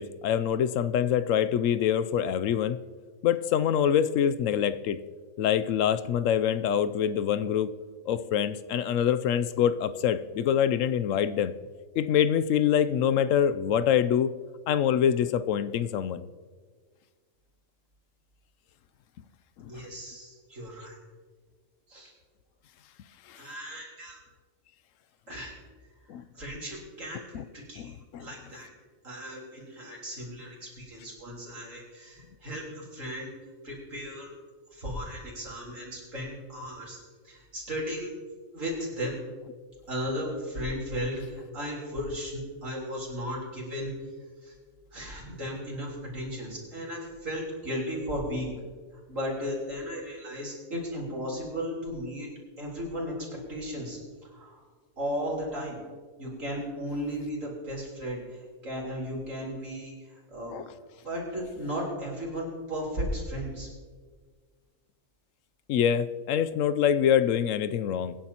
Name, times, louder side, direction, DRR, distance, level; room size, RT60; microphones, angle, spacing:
voice 1, 0.0-2.8 3.2-5.0 5.4-7.7 8.1-11.5 12.0-14.3 14.7-16.3 19.6-19.8 23.3-23.4 26.1-26.2 27.3-27.4 27.8-28.3 60.5-60.6 65.7-68.1, left 9 dB, 75° left, 13 dB, 0.9 m, -25 dB
voice 2, 19.7-21.0 21.9-22.1 23.4-24.2 25.3-25.5 26.3-27.9 28.2-28.7 29.0-33.3 33.6-34.3 34.7-37.0 37.2-38.2 38.5-39.2 39.9-43.9 44.4-44.5 44.9-48.5 49.1-52.3 52.6-54.6 55.0-55.8 56.2-60.6 61.0-63.7, equal, 75° right, -3 dB, 4.1 m, -35 dB
24.0 x 10.5 x 2.9 m, 1.5 s
omnidirectional pair, 1.4 m